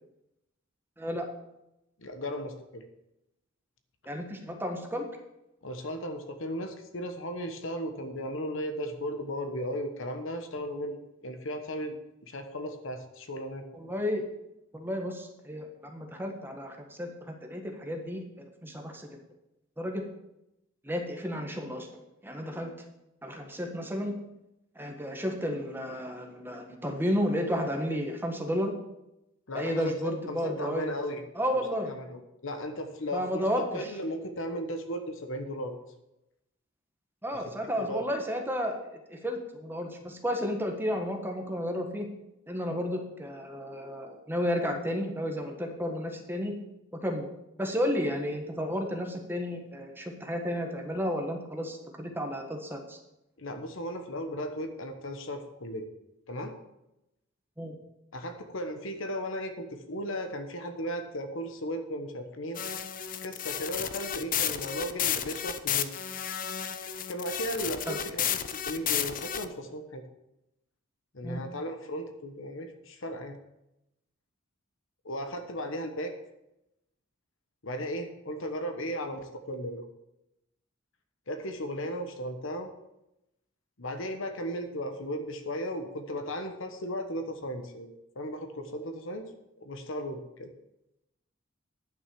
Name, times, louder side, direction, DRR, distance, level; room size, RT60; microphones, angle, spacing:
voice 1, 1.0-1.3 4.0-5.1 13.7-14.2 14.7-18.2 18.6-19.1 19.8-20.0 20.8-21.9 22.2-22.7 23.2-24.1 24.7-28.7 29.5-30.9 31.3-31.9 33.1-33.9 37.2-42.1 42.5-46.5 47.0-47.3 47.6-53.0 57.6-57.8 67.9-68.0 71.2-71.4, equal, 10° right, 3 dB, 1.4 m, -32 dB
voice 2, 2.0-2.8 5.6-12.0 12.3-13.6 29.5-31.2 31.5-31.6 31.9-33.4 33.7-35.8 37.3-37.4 37.8-38.0 53.4-55.9 56.3-56.5 58.1-62.7 63.2-65.9 67.1-70.0 71.1-73.4 75.0-76.1 77.6-79.8 81.3-82.7 83.8-89.3 89.6-90.5, equal, 70° left, 7 dB, 1.2 m, -36 dB
sound 1, 62.5-69.4, left 9 dB, 45° left, 0.6 m, -32 dB
10.5 x 6.2 x 6.9 m, 0.88 s
head